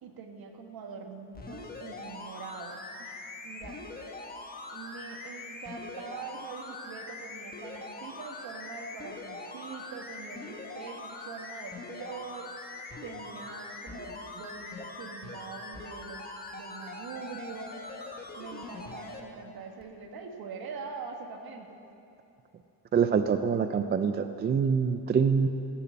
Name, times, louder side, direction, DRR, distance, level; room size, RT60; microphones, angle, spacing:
voice 1, 0.0-3.8 4.7-12.5 13.0-17.7 18.4-21.8, right 5 dB, 60° right, 3 dB, 1.6 m, -43 dB
sound 1, 1.3-19.2 19.8-19.9, left 3 dB, 20° left, 1.3 m, -42 dB
voice 2, 22.9-25.5, right 6 dB, 25° right, 9 dB, 0.3 m, -25 dB
15.5 x 6.8 x 8.3 m, 2.8 s
cardioid pair, 135°, 42 cm